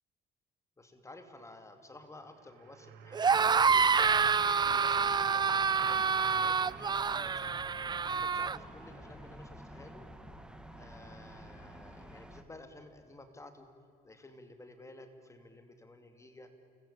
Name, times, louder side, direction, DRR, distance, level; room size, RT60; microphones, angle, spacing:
voice 1, 0.8-3.9 4.4-6.6 7.0-7.6 8.1-10.1 10.7-13.7 14.0-16.5, left 2 dB, 15° left, 7 dB, 2.6 m, -53 dB
sound 1, 2.1-9.2, right 10 dB, 80° right, 1.7 m, -53 dB
sound 2, 3.1-8.6, right 6 dB, 25° right, 0.6 m, -27 dB
sound 3, 3.2-12.4, right 1 dB, 5° right, 2.1 m, -49 dB
29.5 x 21.5 x 8.4 m, 2.4 s
cardioid pair, 110°, 17 cm